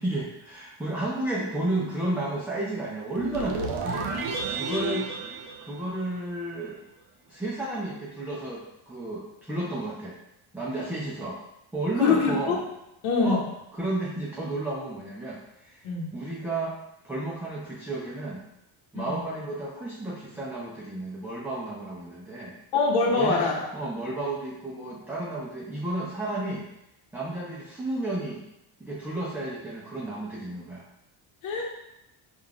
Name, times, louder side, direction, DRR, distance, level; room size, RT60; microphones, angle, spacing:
voice 1, 0.0-4.1 4.5-5.1 5.6-6.8 7.3-10.2 10.5-11.4 11.7-12.6 13.2-13.5 13.7-15.9 16.1-18.4 18.9-22.5 23.1-23.4 23.7-26.7 27.1-28.4 28.8-30.9, right 2 dB, 5° right, -6 dB, 0.3 m, -32 dB
sound 1, 3.2-6.4, right 4 dB, 75° right, 0.8 m, -32 dB
voice 2, 4.6-5.0 12.0-12.6 13.0-13.4 15.8-16.1 19.1-19.2 22.7-23.6 31.4-31.6, left 4 dB, 75° left, -2 dB, 0.9 m, -24 dB
3.7 x 2.4 x 4.6 m, 0.86 s
cardioid pair, 145°, 49 cm